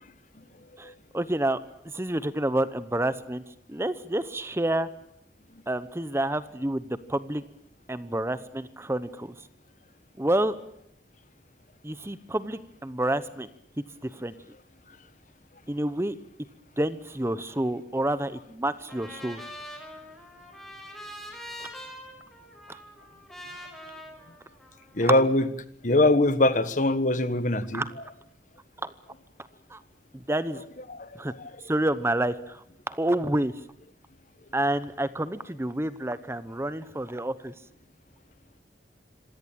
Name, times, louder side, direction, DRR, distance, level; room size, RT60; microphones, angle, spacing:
voice 1, 0.8-1.6 1.9-3.4 3.7-4.9 5.7-7.4 7.9-9.3 10.2-10.6 11.8-13.5 14.0-14.4 15.7-16.2 16.8-19.4 21.6-21.7 22.7-22.8 25.0-25.1 27.7-27.9 28.8-28.9 29.7-29.8 30.1-30.6 31.2-31.3 31.7-33.5 34.5-37.5, right 1 dB, 15° right, 14 dB, 0.8 m, -28 dB
Trumpet, 18.9-25.1, equal, ahead, 5.1 m, -44 dB
voice 2, 24.9-25.5 25.8-27.8 30.9-31.5, left 2 dB, 45° left, 13 dB, 1.5 m, -23 dB
26.5 x 17.0 x 8.9 m, 0.76 s
head